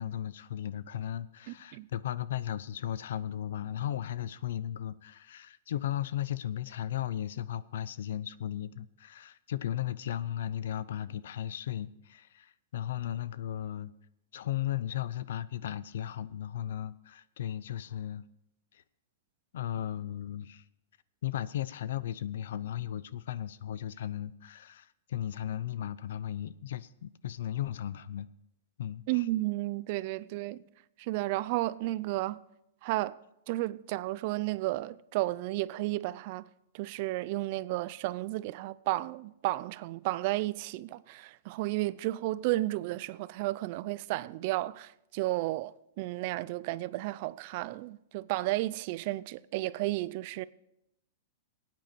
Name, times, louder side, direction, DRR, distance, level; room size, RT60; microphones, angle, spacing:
voice 1, 0.0-13.9 14.3-18.3 18.7-18.8 19.5-20.6 21.2-28.3 28.8-29.2, left 11 dB, 75° left, 0.6 m, -36 dB
voice 2, 1.5-1.9 29.1-30.6 31.0-32.4 32.8-33.2 33.5-36.5 36.7-50.4, right 18 dB, 45° right, 0.4 m, -33 dB
18.5 x 9.2 x 4.6 m
hypercardioid pair, 150°, 0 cm